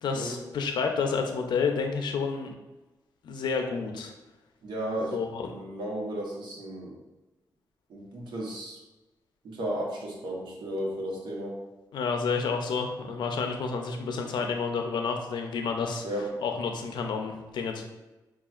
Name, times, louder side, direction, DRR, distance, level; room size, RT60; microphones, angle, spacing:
voice 1, 0.0-2.5 3.2-4.1 5.1-5.5 11.9-16.0 16.4-17.8, left 5 dB, 85° left, 4 dB, 0.5 m, -30 dB
voice 2, 4.6-5.1 5.5-7.0 7.9-8.8 9.4-11.6 16.0-16.2, right 1 dB, 85° right, -2 dB, 1.0 m, -34 dB
5.7 x 2.4 x 2.4 m, 1.1 s
cardioid pair, 95°, 7 cm